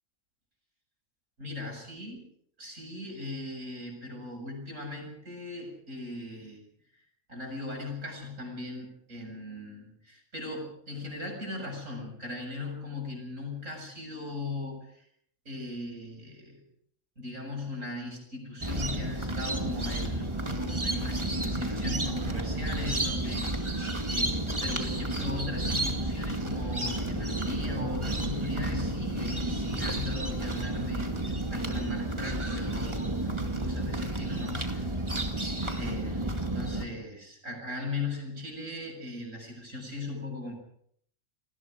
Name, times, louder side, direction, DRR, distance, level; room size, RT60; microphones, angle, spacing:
voice 1, 1.4-2.2 2.6-6.6 7.3-15.1 15.5-16.6 17.2-23.5 24.1-35.1 35.7-40.6, left 2 dB, 75° right, 1 dB, 7.7 m, -39 dB
sound 1, 18.6-36.8, right 1 dB, 20° right, 2.3 m, -31 dB
29.0 x 19.5 x 5.1 m, 0.67 s
omnidirectional pair, 1.3 m